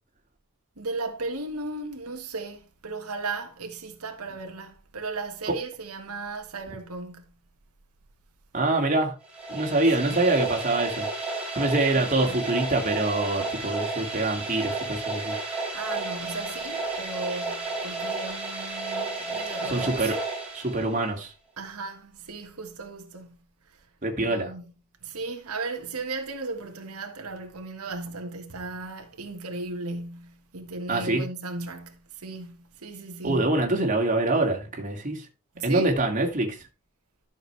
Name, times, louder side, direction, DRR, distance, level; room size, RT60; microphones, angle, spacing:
voice 1, 0.8-7.2 10.0-10.2 11.9-12.4 15.7-20.1 21.6-23.4 23.7-23.8 24.2-24.6 25.0-33.5 35.5-36.0, right 3 dB, 85° right, 1.6 m, -36 dB
voice 2, 8.5-9.1 9.5-11.1 11.6-15.3 19.7-20.2 20.5-21.3 24.0-24.5 30.9-31.2 33.2-35.3 35.6-36.5, right 2 dB, 35° right, 2.4 m, -25 dB
sound 1, 9.2-21.2, right 3 dB, 5° right, 4.1 m, -32 dB
12.5 x 6.6 x 3.3 m
head